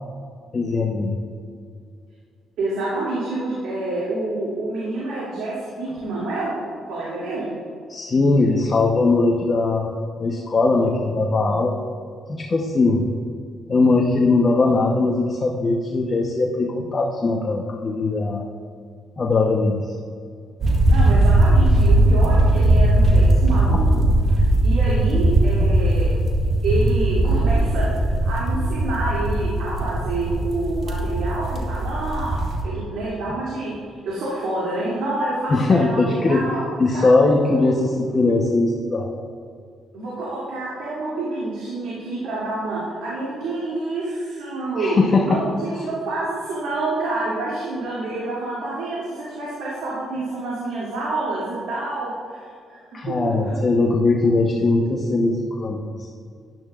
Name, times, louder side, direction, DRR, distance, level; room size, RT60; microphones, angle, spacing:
voice 1, 0.5-1.2 7.9-9.9 10.2-11.8 12.3-13.1 13.7-18.5 19.2-20.0 35.5-36.5 36.8-39.1 44.8-45.4 52.9-56.1, left 3 dB, 35° left, 0 dB, 0.9 m, -20 dB
voice 2, 2.6-6.5 6.9-7.5 20.9-24.0 24.6-26.2 26.6-36.6 36.9-37.2 37.5-37.6 39.9-53.2 53.4-53.5, right 2 dB, 85° right, -8 dB, 2.6 m, -28 dB
sound 1, 20.6-32.6, right 1 dB, 50° right, 1.8 m, -18 dB
12.5 x 10.5 x 2.5 m, 2.3 s
cardioid pair, 90°, 0 cm